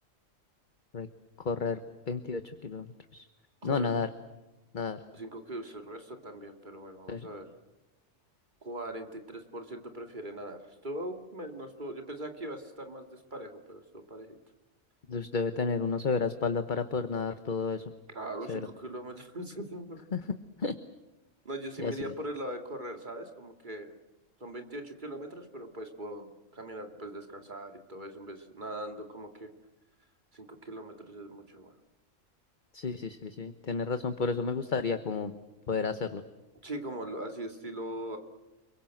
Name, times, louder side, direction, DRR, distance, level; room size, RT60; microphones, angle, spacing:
voice 1, 1.4-1.8 2.1-3.3 3.6-4.1 4.7-5.0 7.1-7.3 15.1-17.9 18.5-18.6 20.1-20.7 21.8-22.1 32.7-35.3 35.7-36.2, left 4 dB, 40° left, 9 dB, 1.2 m, -31 dB
voice 2, 3.6-4.0 5.1-7.5 8.6-14.4 18.1-20.0 21.4-23.9 24.4-29.5 30.3-31.7 36.6-38.2, right 1 dB, 35° right, 5 dB, 2.7 m, -41 dB
30.0 x 22.5 x 7.8 m, 1.0 s
omnidirectional pair, 1.3 m